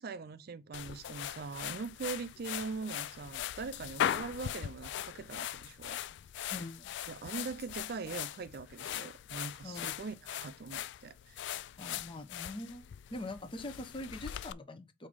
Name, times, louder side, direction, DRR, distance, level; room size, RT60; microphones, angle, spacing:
voice 1, 0.0-6.0 6.4-6.5 7.1-11.6, right 4 dB, 55° right, 0.4 m, -42 dB
sound 1, 0.7-14.5, left 10 dB, 65° left, 0.3 m, -40 dB
voice 2, 6.5-6.9 9.6-9.9 11.8-15.1, left 2 dB, 30° left, 0.8 m, -43 dB
5.2 x 4.1 x 5.1 m
head